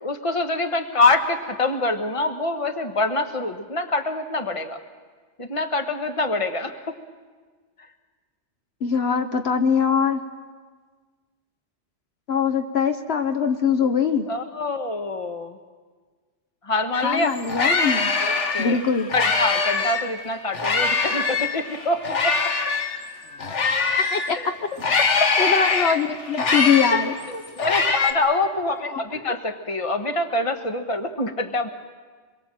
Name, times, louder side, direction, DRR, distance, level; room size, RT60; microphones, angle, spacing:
voice 1, 0.0-4.8 5.4-6.8 14.3-15.6 16.7-17.3 18.2-18.8 19.1-22.4 23.5-23.6 24.2-24.5 25.2-25.3 27.3-31.7, left 2 dB, 30° left, 7 dB, 1.4 m, -25 dB
voice 2, 8.8-10.2 12.3-14.3 17.0-18.1 18.6-19.1 24.1-24.6 25.4-27.1 28.7-29.2, left 6 dB, 65° left, 7 dB, 1.2 m, -22 dB
sound 1, 16.9-17.0 17.3-20.1 20.5-24.3 24.8-28.1, left 4 dB, 85° left, 1.7 m, -23 dB
25.5 x 22.0 x 7.6 m, 1.5 s
omnidirectional pair, 1.2 m